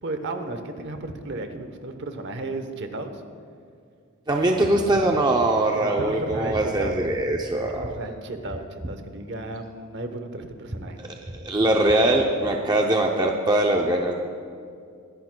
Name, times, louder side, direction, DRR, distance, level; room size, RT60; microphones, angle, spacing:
voice 1, 0.0-3.2 5.7-7.0 7.5-11.0, right 2 dB, 50° right, 7 dB, 0.9 m, -34 dB
voice 2, 4.3-7.9 11.0-14.1, right 1 dB, 20° right, 1 dB, 0.5 m, -22 dB
23.5 x 10.5 x 2.2 m, 2.3 s
head